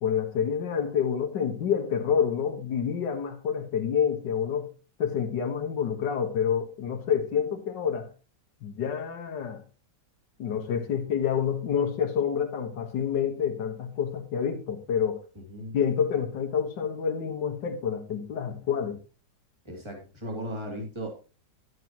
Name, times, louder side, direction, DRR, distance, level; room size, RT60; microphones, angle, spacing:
voice 1, 0.0-4.7 5.0-8.1 8.6-9.6 10.4-15.2 15.7-19.0, left 7 dB, 75° left, 1.9 m, -28 dB
voice 2, 15.3-15.8 19.6-21.1, equal, 15° right, 2.8 m, -36 dB
11.0 x 9.5 x 3.0 m
omnidirectional pair, 1.9 m